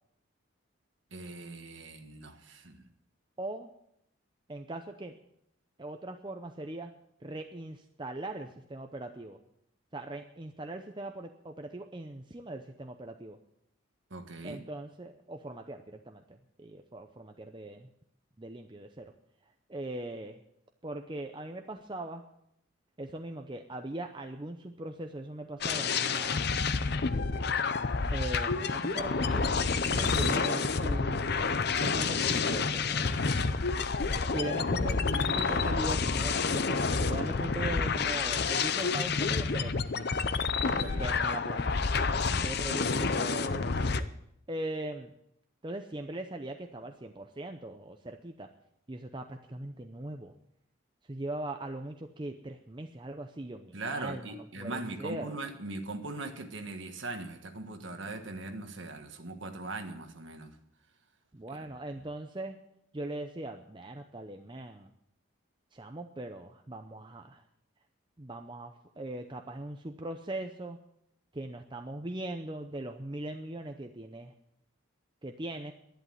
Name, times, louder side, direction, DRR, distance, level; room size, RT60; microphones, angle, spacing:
voice 1, 1.1-2.9 14.1-14.6 29.9-30.2 40.6-41.1 42.2-42.5 53.7-60.6 61.5-61.7, right 2 dB, 60° right, 1.5 m, -40 dB
voice 2, 3.4-3.7 4.5-5.2 5.8-6.9 7.2-9.4 9.9-13.4 14.4-17.9 18.4-19.1 19.7-20.4 20.8-22.2 23.0-26.5 28.1-29.6 29.9-33.1 34.3-40.3 40.7-41.8 42.4-44.1 44.5-45.1 45.6-48.5 48.9-50.3 51.0-55.3 61.3-62.6 62.9-64.9 65.7-67.4 68.2-70.8 71.3-74.3 75.2-75.7, right 1 dB, 20° right, 0.6 m, -40 dB
sound 1, 25.6-44.0, left 4 dB, 50° left, 0.6 m, -29 dB
11.5 x 11.0 x 7.5 m
head